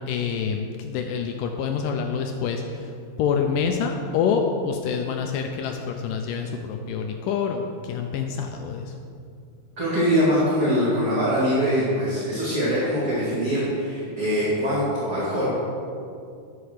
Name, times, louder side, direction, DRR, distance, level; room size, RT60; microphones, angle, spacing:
voice 1, 0.1-2.9 3.2-9.0, left 6 dB, 80° left, 4 dB, 2.0 m, -26 dB
voice 2, 9.8-15.5, equal, 30° right, -10 dB, 2.5 m, -23 dB
11.5 x 5.7 x 6.4 m, 2.4 s
omnidirectional pair, 4.4 m